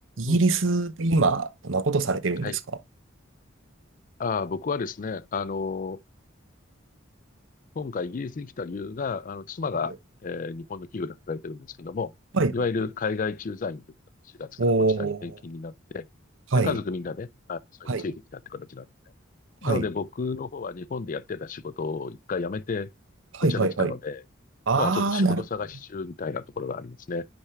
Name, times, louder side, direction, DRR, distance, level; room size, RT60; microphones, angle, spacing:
voice 1, 0.2-2.5 12.3-12.5 14.6-15.4 16.5-16.8 17.9-18.1 19.6-19.9 23.3-23.9 24.7-25.4, right 3 dB, 65° right, 0.8 m, -23 dB
voice 2, 4.2-6.0 7.8-9.9 10.2-12.1 12.5-13.8 14.4-14.5 15.0-16.1 16.5-18.9 19.6-22.9 23.5-24.2 24.8-27.3, left 4 dB, 40° left, 0.4 m, -32 dB
10.0 x 3.5 x 3.2 m
head